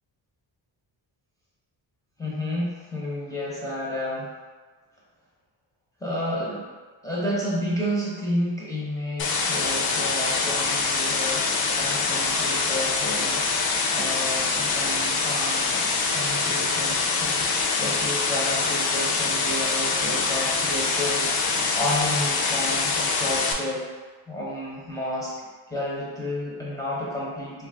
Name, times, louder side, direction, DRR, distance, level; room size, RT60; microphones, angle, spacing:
voice 1, 2.2-4.3 6.0-6.6 7.0-13.5 13.9-23.9 24.3-27.7, left 1 dB, 10° left, -7 dB, 0.6 m, -31 dB
sound 1, 9.2-23.5, left 4 dB, 55° left, 0.5 m, -24 dB
3.2 x 2.4 x 3.3 m, 1.4 s
wide cardioid pair, 155°, 44 cm